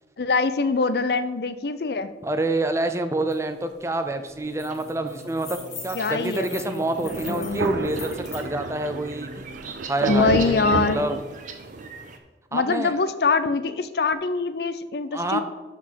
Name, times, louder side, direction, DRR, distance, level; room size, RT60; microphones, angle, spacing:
voice 1, 0.2-2.1 5.9-7.9 10.1-11.0 12.5-15.4, left 4 dB, 65° left, 12 dB, 0.5 m, -24 dB
voice 2, 2.2-5.6 5.8-9.3 9.9-11.2 12.5-13.0 15.1-15.4, right 2 dB, 15° right, 9 dB, 0.5 m, -27 dB
sound 1, 3.3-3.4 3.7-3.9 4.3-8.4, left 5 dB, 40° left, 1.9 m, -42 dB
sound 2, 3.6-12.2, right 3 dB, 45° right, 0.8 m, -41 dB
Thunder, 7.1-11.9, right 4 dB, 80° right, 0.4 m, -31 dB
12.0 x 4.1 x 4.6 m, 1.2 s
head